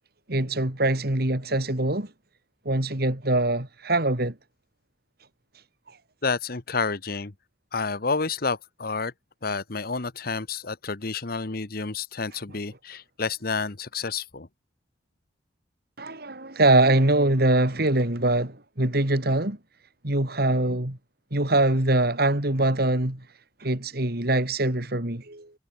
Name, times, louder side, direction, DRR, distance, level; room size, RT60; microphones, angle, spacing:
voice 1, 0.3-2.1 2.6-4.4 16.0-19.6 20.0-21.0 21.3-23.2 23.6-25.5, right 2 dB, 55° right, 3.1 m, -23 dB
voice 2, 6.2-7.3 7.7-9.1 9.4-14.5, left 4 dB, 55° left, 1.2 m, -29 dB
head